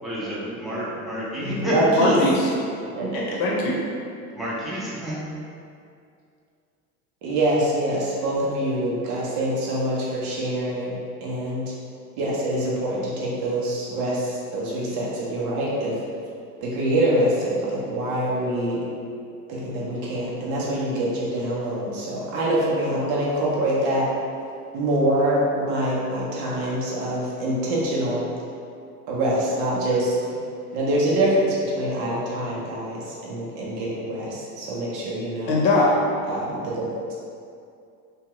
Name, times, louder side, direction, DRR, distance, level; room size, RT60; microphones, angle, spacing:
voice 1, 0.0-1.7 4.3-5.2, equal, ahead, -9 dB, 0.7 m, -30 dB
voice 2, 1.4-2.2 3.0-3.4 7.2-11.7 12.2-16.0 16.6-18.8 19.5-24.1 24.7-28.3 29.1-30.2 30.7-35.5 36.3-37.1, right 1 dB, 55° right, -6 dB, 0.8 m, -25 dB
voice 3, 2.0-2.5 3.1-3.8 35.5-35.9, left 2 dB, 45° left, -3 dB, 0.8 m, -21 dB
2.7 x 2.4 x 2.9 m, 2.4 s
hypercardioid pair, 85°, 46 cm